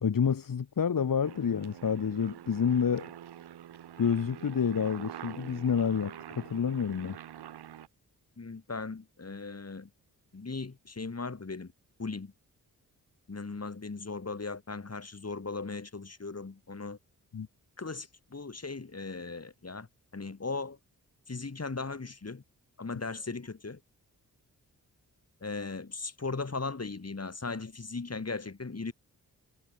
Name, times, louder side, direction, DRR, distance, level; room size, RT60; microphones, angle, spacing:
voice 1, 0.0-3.1 4.0-7.2 17.3-17.5, left 7 dB, 55° left, 2.2 m, -28 dB
Aircraft, 1.2-7.9, right 11 dB, 85° right, 2.8 m, -46 dB
voice 2, 8.4-9.9 10.3-11.7 12.0-12.3 13.3-17.0 17.8-19.9 20.1-20.8 21.3-22.4 22.8-23.8 25.4-28.9, left 4 dB, 40° left, 6.8 m, -38 dB
supercardioid pair, 45°, 39 cm